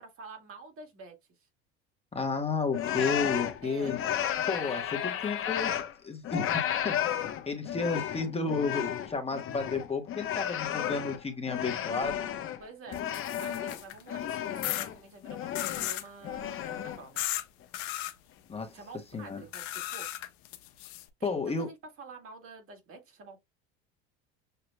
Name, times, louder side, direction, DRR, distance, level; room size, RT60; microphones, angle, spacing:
voice 1, 0.0-1.5 3.6-4.0 4.6-5.2 12.6-17.2 18.7-20.1 21.2-23.4, right 3 dB, 45° right, 1.9 m, -48 dB
voice 2, 2.1-4.0 4.5-5.7 6.0-7.2 7.5-12.2 18.5-18.8 19.1-19.4 21.2-21.7, left 4 dB, 20° left, 1.2 m, -32 dB
sound 1, 2.7-5.9 6.2-12.6 12.9-14.9 15.2-15.9 16.2-17.0, left 10 dB, 45° left, 0.9 m, -33 dB
sound 2, 12.9-14.0 14.6-14.9 15.5-16.1 17.2-17.4 17.7-18.1 19.5-21.0, left 14 dB, 70° left, 0.9 m, -35 dB
6.8 x 2.8 x 2.2 m
supercardioid pair, 90°, 31 cm